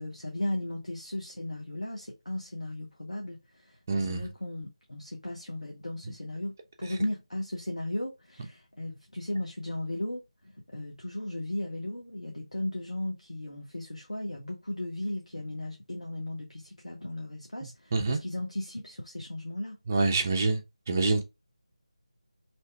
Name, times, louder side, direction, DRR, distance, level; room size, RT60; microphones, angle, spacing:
voice 1, 0.0-6.5 6.8-10.2 10.7-19.8, left 1 dB, 75° left, 0.7 m, -36 dB
voice 2, 3.9-4.2 17.9-18.2 19.9-20.6 20.9-21.2, right 3 dB, 25° right, 0.4 m, -26 dB
2.7 x 2.2 x 3.2 m
figure-of-eight pair, 160°, 4 cm